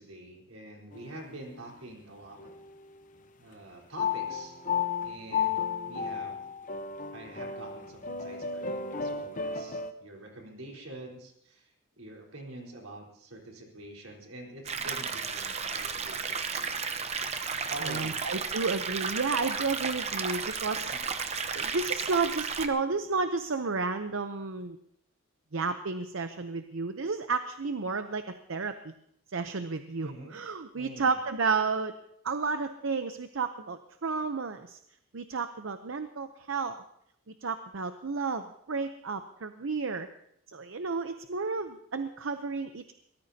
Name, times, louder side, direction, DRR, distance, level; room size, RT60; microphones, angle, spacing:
voice 1, 0.0-2.5 3.4-4.5 5.0-6.5 7.1-16.8 17.7-18.2 20.9-21.0 30.0-30.4 30.7-31.2, right 1 dB, 90° right, 0 dB, 4.1 m, -46 dB
sound 1, 0.9-1.7 2.4-3.0 4.0-9.9, left 6 dB, 40° left, 0.9 m, -33 dB
sound 2, 14.6-22.7, right 5 dB, 30° right, 0.8 m, -33 dB
voice 2, 17.8-20.9 21.5-24.8 25.5-28.9 29.3-31.9 32.2-34.8 35.1-36.8 37.4-40.1 40.5-42.9, right 4 dB, 70° right, 8 dB, 0.7 m, -32 dB
23.0 x 18.5 x 2.8 m, 0.74 s
head